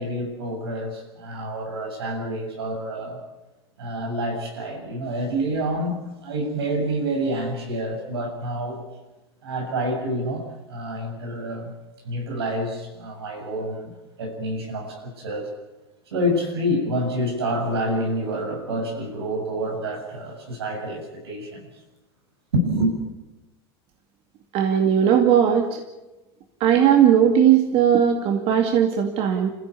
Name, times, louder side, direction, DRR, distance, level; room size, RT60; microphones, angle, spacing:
voice 1, 0.0-3.2 3.8-8.8 9.4-11.7 12.0-13.9 14.2-15.5 16.1-21.7 22.5-22.9, equal, 85° right, 2 dB, 7.1 m, -27 dB
voice 2, 24.5-25.8 26.6-29.5, right 9 dB, 50° right, 4 dB, 2.4 m, -18 dB
28.0 x 15.5 x 8.5 m, 1.1 s
hypercardioid pair, 90°, 13 cm